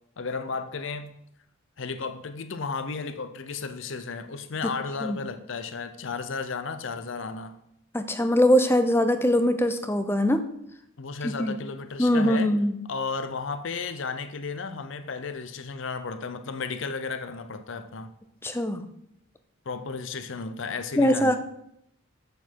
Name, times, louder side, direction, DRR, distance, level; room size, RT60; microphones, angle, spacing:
voice 1, 0.2-1.2 1.8-7.6 11.0-12.5 12.9-18.1 19.7-21.4, left 4 dB, 60° left, 0.6 m, -33 dB
voice 2, 7.9-10.5 11.2-11.5 12.0-12.8 18.4-18.8 21.0-21.4, equal, 10° left, 0.4 m, -22 dB
8.1 x 6.4 x 4.6 m
head